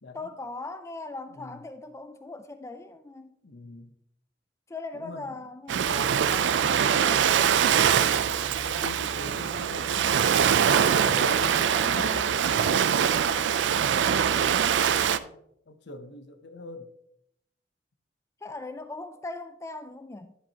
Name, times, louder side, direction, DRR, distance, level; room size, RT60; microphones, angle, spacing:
voice 1, 0.1-3.4 4.7-6.9 11.7-12.3 18.4-20.4, left 2 dB, 15° left, 0.3 m, -40 dB
voice 2, 3.4-3.9 4.9-5.3 7.5-10.2 10.8-11.7 11.9-15.4 15.7-16.9, left 3 dB, 65° left, 0.7 m, -43 dB
Ocean, 5.7-15.2, right 8 dB, 75° right, 0.4 m, -23 dB
10.5 x 7.3 x 2.8 m
head